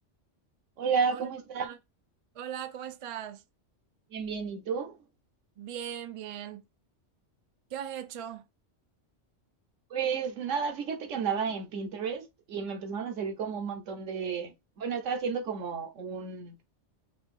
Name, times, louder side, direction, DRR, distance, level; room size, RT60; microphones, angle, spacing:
voice 1, 0.8-1.6 4.1-5.0 9.9-16.5, right 6 dB, 90° right, 1.2 m, -32 dB
voice 2, 2.3-3.4 5.6-6.6 7.7-8.4, right 10 dB, 50° right, 0.4 m, -39 dB
5.1 x 2.6 x 3.7 m
omnidirectional pair, 1.2 m